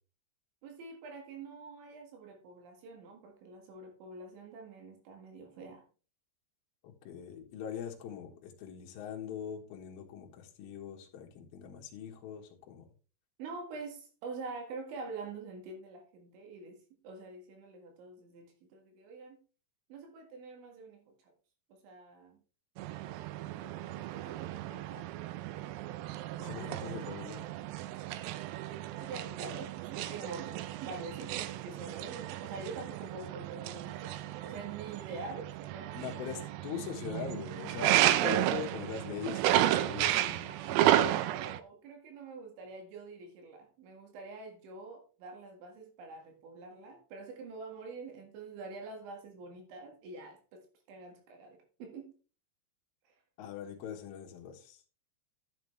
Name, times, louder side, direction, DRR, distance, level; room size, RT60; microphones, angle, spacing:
voice 1, 0.6-5.9 13.4-16.8 17.0-19.4 19.9-21.3 21.7-22.4 23.3-25.0 26.4-27.0 29.0-36.5 40.4-50.6 50.9-52.1 53.1-53.2, right 3 dB, 75° right, 4.0 m, -46 dB
voice 2, 6.8-12.9 26.4-27.5 35.9-40.5 53.4-54.8, left 8 dB, 65° left, 2.8 m, -42 dB
sound 1, 22.8-41.6, right 13 dB, 90° right, 2.4 m, -33 dB
11.5 x 7.3 x 3.2 m
omnidirectional pair, 5.6 m